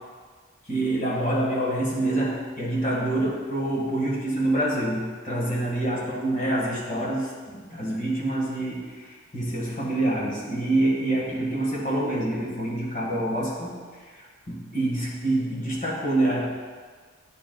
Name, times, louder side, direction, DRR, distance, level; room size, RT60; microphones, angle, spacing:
voice 1, 0.7-13.8 14.0-16.4, right 1 dB, 35° left, -5 dB, 1.7 m, -26 dB
9.7 x 6.6 x 2.3 m, 1.5 s
head